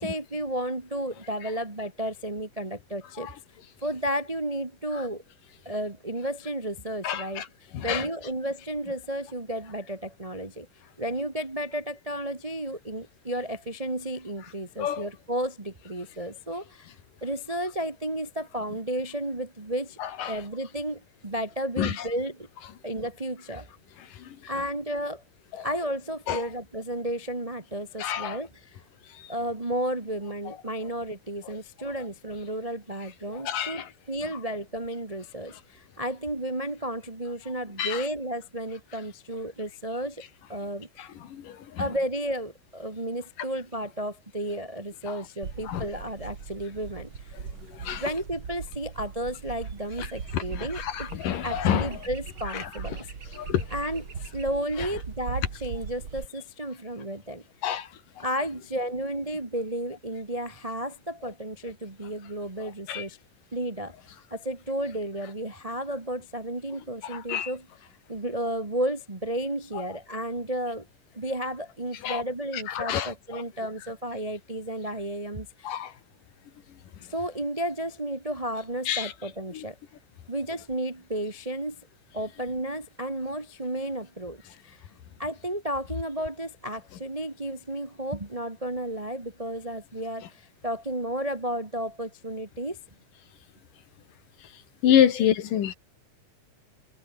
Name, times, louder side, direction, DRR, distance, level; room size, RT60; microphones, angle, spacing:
voice 1, 0.0-3.3 3.8-5.2 5.6-10.7 11.0-16.9 17.2-20.0 20.3-22.5 22.8-23.7 24.5-25.2 25.6-28.8 29.3-40.2 40.5-40.9 41.8-47.3 48.0-51.1 51.4-53.1 53.7-57.7 58.2-63.2 63.5-63.9 64.3-67.7 68.1-70.8 71.1-75.8 77.1-79.8 80.3-81.7 82.1-84.9 85.2-92.8 95.1-95.3, right 1 dB, 65° right, 0.3 m, -33 dB
voice 2, 7.0-7.4 7.7-8.1 14.8-15.1 20.2-20.3 21.8-21.9 26.3-26.4 28.0-28.4 33.4-33.8 37.8-38.0 41.3-41.8 45.7-45.9 47.8-48.0 50.3-51.9 53.4-53.6 57.6-57.9 62.9-63.0 67.1-67.5 72.0-72.2 72.7-73.4 75.7-75.9 78.9-79.1 94.8-95.7, left 10 dB, 70° left, 3.4 m, -26 dB
sound 1, 45.4-56.2, right 6 dB, 40° right, 2.9 m, -39 dB
omnidirectional pair, 4.1 m